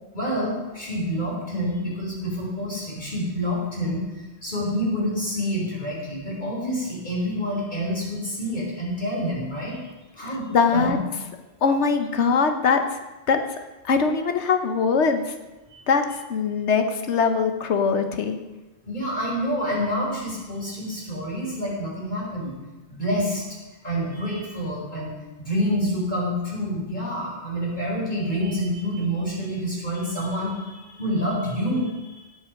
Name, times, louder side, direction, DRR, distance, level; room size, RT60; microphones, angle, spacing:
voice 1, 0.1-4.0 4.4-9.8 10.2-11.0 15.7-15.8 18.8-22.5 22.9-23.4 23.8-32.3, equal, 40° left, -4 dB, 4.3 m, -27 dB
voice 2, 10.2-11.0 11.6-12.8 13.3-13.4 13.8-15.2 15.9-16.0 16.3-18.4, left 5 dB, 80° left, 6 dB, 1.2 m, -21 dB
18.0 x 6.2 x 5.1 m, 1.1 s
omnidirectional pair, 1.2 m